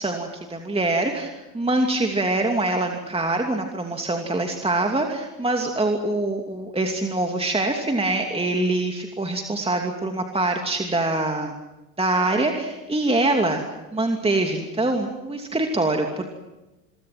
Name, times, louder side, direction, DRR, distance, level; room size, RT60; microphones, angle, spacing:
voice 1, 0.0-11.6 12.0-13.6 13.9-16.3, right 2 dB, 10° right, 3 dB, 2.7 m, -24 dB
28.5 x 23.0 x 6.1 m, 1.0 s
hypercardioid pair, 75°, 49 cm